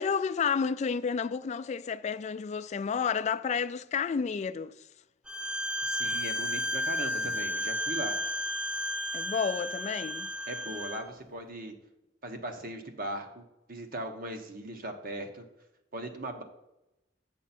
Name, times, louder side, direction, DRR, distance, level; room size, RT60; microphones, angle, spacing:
voice 1, 0.0-4.7 9.1-10.3, left 6 dB, 40° left, 0.3 m, -30 dB
Bowed string instrument, 5.3-11.0, equal, 5° right, 0.7 m, -33 dB
voice 2, 5.8-8.2 10.5-11.7 12.2-13.4 13.7-15.4 15.9-16.4, right 1 dB, 50° right, 1.1 m, -39 dB
7.3 x 7.0 x 4.3 m
head